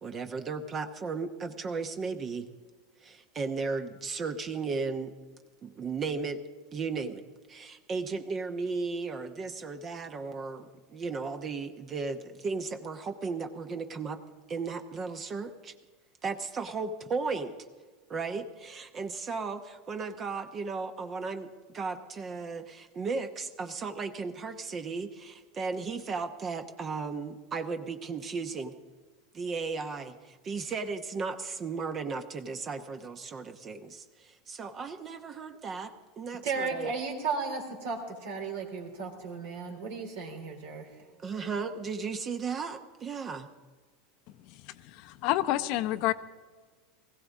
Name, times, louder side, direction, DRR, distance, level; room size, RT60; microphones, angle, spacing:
voice 1, 0.0-2.5 3.0-5.1 5.6-6.4 6.7-7.2 7.5-14.2 14.5-15.7 16.2-17.6 18.1-28.8 29.3-36.9 41.2-43.5, right 4 dB, 35° right, 8 dB, 0.9 m, -35 dB
voice 2, 36.4-41.0, right 4 dB, 70° right, 2 dB, 3.2 m, -35 dB
voice 3, 44.4-46.1, left 15 dB, 60° left, 13 dB, 0.7 m, -29 dB
20.0 x 15.5 x 3.6 m, 1.4 s
hypercardioid pair, 90°, 0 cm